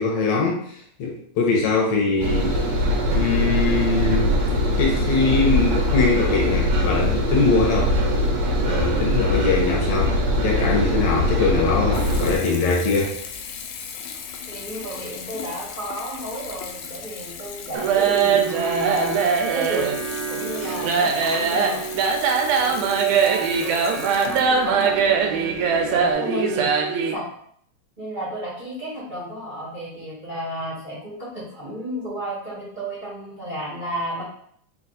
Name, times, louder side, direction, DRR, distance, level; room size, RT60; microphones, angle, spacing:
voice 1, 0.0-2.7 3.1-4.3 4.8-8.0 8.7-13.1, left 4 dB, 70° left, -1 dB, 1.7 m, -22 dB
Engine, 2.2-12.4, equal, 65° right, 1.5 m, -22 dB
Water tap faucet / Bathtub (filling or washing) / Trickle dribble, 11.3-26.1, left 6 dB, 85° left, 1.4 m, -37 dB
voice 2, 14.5-19.2 19.5-20.0 20.3-21.8 22.6-25.5 25.9-26.7 27.1-27.3 28.0-34.2, right 1 dB, 35° right, -9 dB, 0.8 m, -32 dB
sound 1, 17.7-27.1, right 6 dB, 90° right, 2.1 m, -21 dB
4.6 x 2.4 x 3.9 m, 0.64 s
omnidirectional pair, 3.4 m